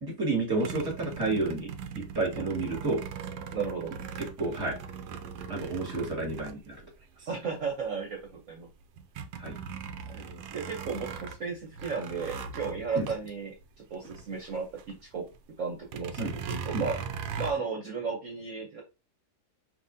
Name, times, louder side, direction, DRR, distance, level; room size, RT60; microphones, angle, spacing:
voice 1, 0.0-3.0 4.4-4.8 5.5-6.8 9.4-9.6 13.0-13.1 16.2-16.3 16.7-16.9, right 3 dB, 15° right, -2 dB, 1.7 m, -30 dB
sound 1, 0.6-7.2 7.8-7.9 8.3-14.9 15.2-15.4 15.8-17.5, right 6 dB, 80° right, 1.2 m, -39 dB
voice 2, 3.5-3.9 7.3-8.2 8.5-8.7 10.1-13.5 13.9-14.7 15.1-15.2 15.6-17.0 17.4-18.8, right 5 dB, 55° right, 0 dB, 1.2 m, -34 dB
5.3 x 2.9 x 2.7 m, 0.28 s
omnidirectional pair, 1.8 m